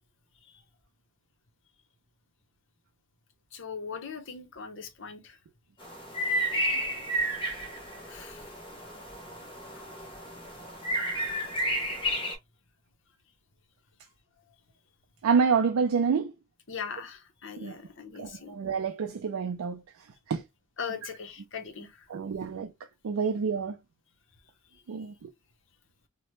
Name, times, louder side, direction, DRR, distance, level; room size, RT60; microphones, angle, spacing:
voice 1, 3.5-5.4 8.1-8.5 9.7-9.8 16.7-18.6 20.8-22.1 24.7-24.8, left 6 dB, 60° left, 0.8 m, -40 dB
sound 1, 5.8-12.3, equal, 25° left, 0.8 m, -32 dB
voice 2, 15.2-16.3 17.6-17.8 18.2-20.4 22.1-22.7 23.0-23.8 24.9-25.3, right 5 dB, 90° right, 0.4 m, -28 dB
2.9 x 2.1 x 3.1 m
head